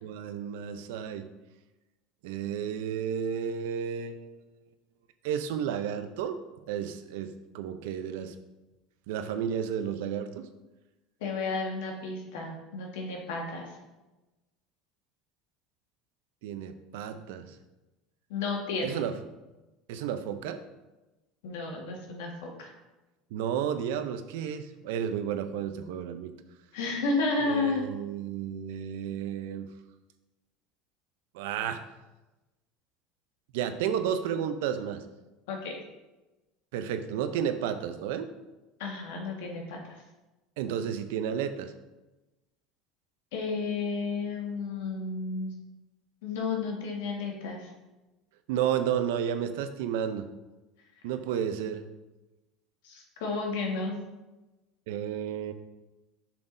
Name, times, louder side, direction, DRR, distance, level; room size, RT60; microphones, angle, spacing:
voice 1, 0.0-1.2 2.2-4.3 5.2-6.4 6.7-8.3 9.1-10.5 16.4-17.5 18.8-19.1 19.9-20.6 23.3-26.3 27.4-29.7 31.3-31.8 33.5-35.0 36.7-38.3 40.6-41.7 48.5-50.3 51.0-51.8 54.9-55.5, right 8 dB, 80° right, 10 dB, 0.5 m, -32 dB
voice 2, 11.2-13.7 18.3-19.0 21.4-22.7 26.7-27.9 35.5-35.8 38.8-40.0 43.3-45.5 46.2-47.7 52.8-54.0, left 3 dB, 85° left, 0 dB, 1.6 m, -32 dB
7.2 x 6.0 x 2.6 m, 1.1 s
supercardioid pair, 125°, 0 cm